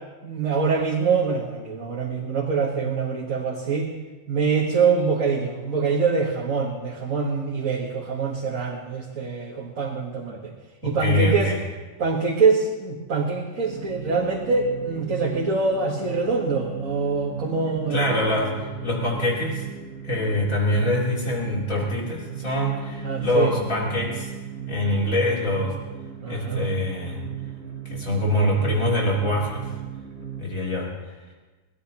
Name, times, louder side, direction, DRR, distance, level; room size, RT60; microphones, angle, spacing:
voice 1, 0.2-3.9 4.3-10.5 10.8-11.5 12.0-18.0 23.0-23.5 26.2-26.7, right 4 dB, 75° right, -3 dB, 1.8 m, -24 dB
voice 2, 10.8-11.6 17.9-19.7 20.0-24.3 24.7-25.7 26.3-27.2 27.9-29.7 30.4-30.9, left 1 dB, 85° left, -4 dB, 3.8 m, -24 dB
sound 1, 13.7-30.4, right 9 dB, 55° right, 2.0 m, -37 dB
22.5 x 16.5 x 2.9 m, 1.2 s
omnidirectional pair, 1.4 m